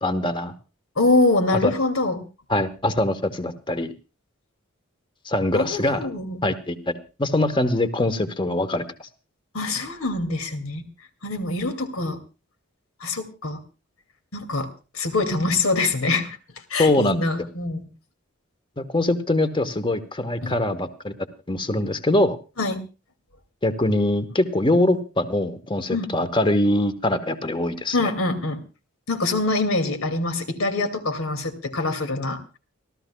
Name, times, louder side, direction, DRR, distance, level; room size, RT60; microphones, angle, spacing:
voice 1, 0.0-0.5 1.6-1.7 2.5-3.9 5.2-6.1 6.4-9.1 16.8-17.2 18.8-21.1 21.5-22.4 23.6-28.1, left 1 dB, 25° left, 10 dB, 1.1 m, -23 dB
voice 2, 1.0-2.2 5.5-6.4 9.5-10.8 11.2-12.2 13.0-13.6 14.3-16.4 16.7-17.9 20.4-20.5 22.6-22.8 25.9-26.1 27.9-28.6 29.1-32.6, left 2 dB, 80° left, 8 dB, 2.4 m, -24 dB
30.0 x 13.5 x 2.3 m, 0.32 s
head